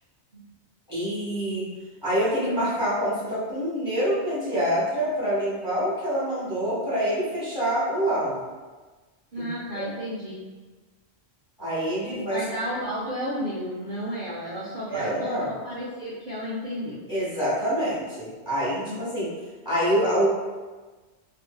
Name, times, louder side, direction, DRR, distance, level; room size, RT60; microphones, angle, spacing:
voice 1, 0.9-1.7 2.0-8.4 9.3-9.5 9.7-9.9 11.6-12.4 14.9-15.5 17.1-19.3 19.6-20.3, equal, 25° left, -11 dB, 1.0 m, -26 dB
voice 2, 9.3-10.4 12.2-17.0 18.7-19.1, equal, 55° right, -8 dB, 0.5 m, -32 dB
2.6 x 2.5 x 2.2 m, 1.3 s
omnidirectional pair, 1.2 m